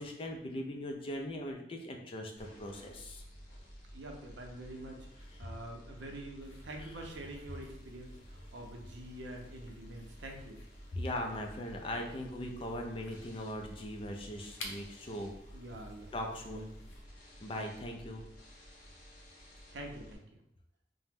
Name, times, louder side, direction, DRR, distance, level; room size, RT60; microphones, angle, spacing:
voice 1, 0.0-3.2 10.9-15.3 16.1-16.7 17.4-18.2, left 1 dB, 30° left, 2 dB, 0.3 m, -40 dB
sound 1, 2.4-20.1, equal, 45° left, 0.8 m, -53 dB
voice 2, 3.9-10.6 15.5-16.1 16.5-16.6 19.7-20.2, right 1 dB, 75° right, 2 dB, 0.6 m, -46 dB
sound 2, 6.4-17.0, left 2 dB, 90° left, 0.6 m, -54 dB
2.8 x 2.1 x 3.4 m, 0.83 s
head